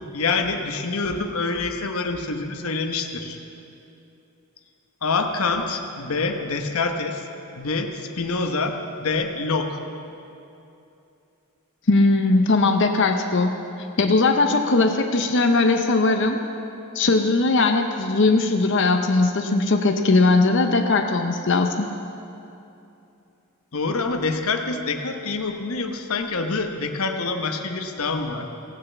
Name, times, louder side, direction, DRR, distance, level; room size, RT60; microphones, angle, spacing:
voice 1, 0.1-3.4 5.0-7.3 7.6-9.8 23.7-28.5, left 3 dB, 75° left, 5 dB, 1.0 m, -26 dB
voice 2, 11.9-13.6 14.0-16.4 16.9-21.9, left 3 dB, 55° left, 5 dB, 0.6 m, -19 dB
17.0 x 6.6 x 7.1 m, 2.8 s
head